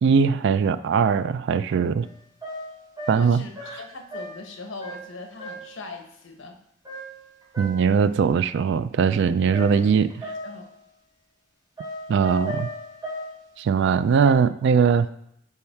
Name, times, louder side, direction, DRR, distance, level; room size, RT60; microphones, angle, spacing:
voice 1, 0.0-2.1 3.1-3.4 7.6-10.1 12.1-12.7 13.6-15.1, right 6 dB, 65° right, 14 dB, 0.3 m, -20 dB
sound 1, 2.0-2.1 2.4-4.5 4.8-5.1 5.4-5.8 6.9-7.9 9.5-10.7 11.8-13.4 14.2-14.3, equal, 20° right, 3.0 m, -36 dB
voice 2, 3.1-6.6 9.7-10.1 10.4-10.7, left 3 dB, 85° left, 4 dB, 1.1 m, -40 dB
7.1 x 4.4 x 4.5 m, 0.73 s
head